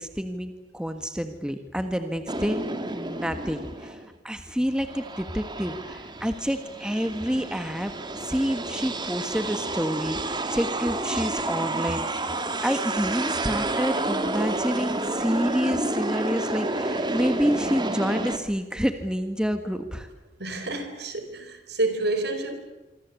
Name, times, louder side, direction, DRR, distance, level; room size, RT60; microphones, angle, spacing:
voice 1, 0.0-2.6 2.9-12.1 12.6-20.1, equal, 5° right, 1.5 m, -28 dB
sound 1, 2.3-4.1 4.6-18.4, right 2 dB, 25° right, 2.0 m, -30 dB
voice 2, 20.4-22.6, right 2 dB, 60° right, 4.4 m, -29 dB
25.5 x 25.5 x 8.4 m
head